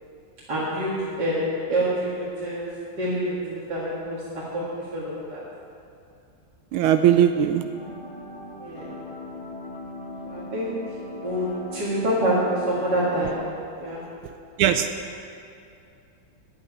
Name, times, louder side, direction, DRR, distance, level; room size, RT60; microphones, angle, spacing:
voice 1, 0.5-5.4 8.5-8.9 10.2-10.8 11.2-13.4 13.8-14.1, right 1 dB, 55° right, -8 dB, 2.5 m, -27 dB
voice 2, 6.7-7.7 14.6-14.9, right 10 dB, 85° right, 8 dB, 1.4 m, -19 dB
sound 1, 7.7-13.4, left 2 dB, 35° left, 1.6 m, -39 dB
9.2 x 8.8 x 9.8 m, 2.5 s
omnidirectional pair, 2.3 m